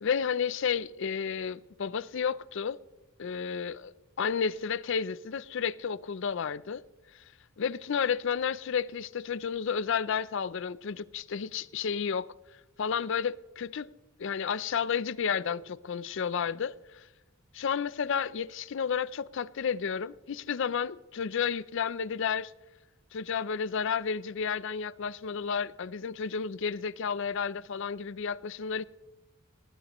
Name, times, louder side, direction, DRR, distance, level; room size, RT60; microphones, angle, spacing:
voice 1, 0.0-2.8 3.2-6.8 7.6-12.3 12.8-13.9 14.2-16.7 17.5-22.5 23.1-28.8, left 6 dB, 60° left, 0.5 m, -31 dB
19.5 x 19.5 x 3.0 m
head